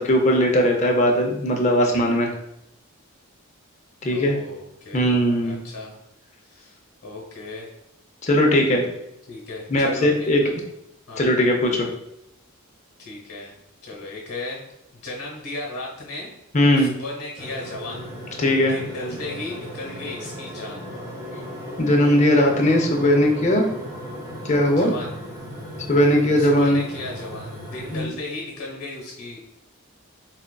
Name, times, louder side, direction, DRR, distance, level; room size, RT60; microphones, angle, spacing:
voice 1, 0.0-2.3 4.0-4.4 4.9-5.6 8.2-8.9 9.7-10.4 11.2-11.9 16.5-16.9 18.4-18.8 21.8-23.7 24.4-24.9 25.9-26.8 27.9-28.1, left 1 dB, 30° left, 1 dB, 0.5 m, -19 dB
voice 2, 4.1-6.0 6.4-7.7 9.3-10.5 11.1-11.2 13.0-13.5 13.8-14.6 15.0-16.3 16.7-18.1 18.7-20.9 24.8-25.1 26.3-29.4, left 2 dB, 85° left, -4 dB, 1.0 m, -35 dB
sound 1, 17.4-28.0, equal, 15° right, 0.7 m, -36 dB
4.2 x 2.4 x 2.2 m, 0.81 s
head